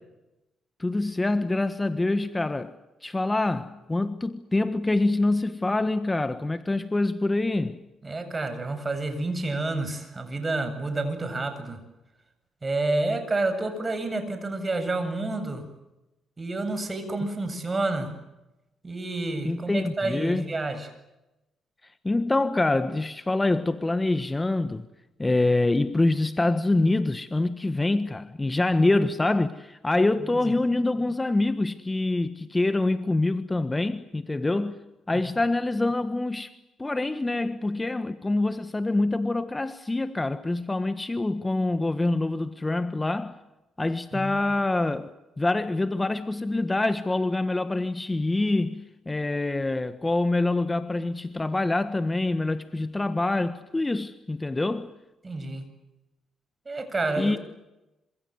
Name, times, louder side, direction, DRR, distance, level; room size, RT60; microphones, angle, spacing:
voice 1, 0.8-7.8 19.4-20.5 21.8-24.9 25.2-34.8 35.1-36.5 36.8-43.4 43.8-54.9 57.2-57.4, left 2 dB, 20° left, 1.5 m, -25 dB
voice 2, 8.0-11.8 12.6-15.6 16.4-18.1 18.8-20.9 30.0-30.5 44.1-44.4 55.2-55.7 56.6-57.4, right 2 dB, 30° right, 8.0 m, -29 dB
27.0 x 26.5 x 8.0 m
supercardioid pair, 65°, 0 cm